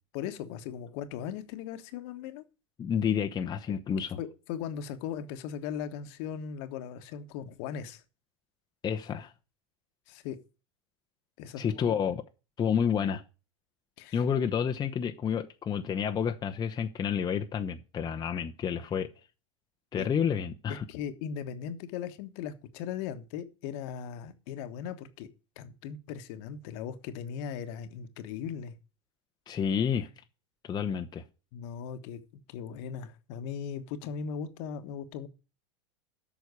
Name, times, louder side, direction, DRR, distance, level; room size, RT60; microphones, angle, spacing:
voice 1, 0.1-2.4 4.2-8.0 10.1-10.4 11.4-12.0 14.0-14.2 19.9-20.1 20.9-25.3 25.6-28.8 31.5-32.2 32.5-35.3, left 8 dB, 55° left, 1.3 m, -38 dB
voice 2, 2.8-4.2 8.8-9.3 11.6-12.2 12.6-13.2 14.1-19.1 19.9-20.8 29.5-30.1 30.7-31.2, left 7 dB, 25° left, 0.9 m, -29 dB
8.3 x 6.3 x 8.1 m
hypercardioid pair, 95°, 16 cm